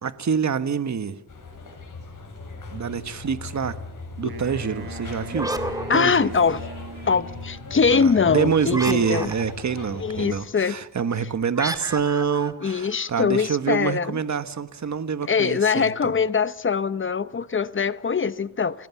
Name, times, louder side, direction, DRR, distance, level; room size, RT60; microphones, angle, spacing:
voice 1, 0.0-1.2 2.7-3.8 4.2-5.5 5.9-6.3 7.9-16.1, right 6 dB, 50° right, 1.4 m, -26 dB
sound 1, 1.3-10.4, left 3 dB, 60° left, 7.6 m, -39 dB
Wind instrument woodwind instrument, 4.3-7.8, right 3 dB, 80° right, 6.9 m, -41 dB
sound 2, 5.3-6.8 8.7-9.7 11.5-13.4, right 1 dB, 10° right, 2.1 m, -33 dB
voice 2, 5.9-6.6 7.1-9.3 10.0-10.8 12.6-14.2 15.3-18.9, left 5 dB, 35° left, 0.9 m, -22 dB
29.5 x 17.0 x 7.2 m
wide cardioid pair, 100°, 36 cm